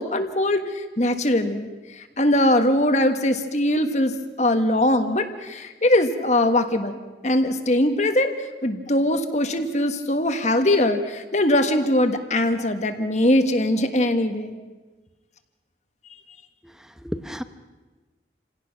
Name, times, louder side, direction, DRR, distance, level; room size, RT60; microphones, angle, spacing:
voice 1, 0.0-1.7 1.9-7.0 7.2-8.3 8.6-14.5, left 1 dB, 40° left, 7 dB, 1.5 m, -21 dB
voice 2, 16.6-17.4, equal, 5° right, 10 dB, 0.8 m, -33 dB
28.5 x 17.0 x 6.0 m, 1.2 s
head